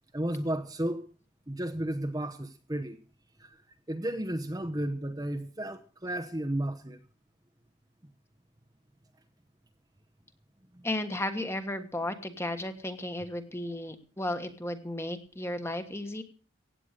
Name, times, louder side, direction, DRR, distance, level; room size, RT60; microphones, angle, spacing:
voice 1, 0.1-1.1 1.5-3.0 3.4-3.6 3.9-7.0 10.7-10.9, right 1 dB, 20° right, 0.9 m, -33 dB
voice 2, 10.8-16.2, left 1 dB, 15° left, 1.4 m, -34 dB
16.5 x 9.1 x 6.5 m
head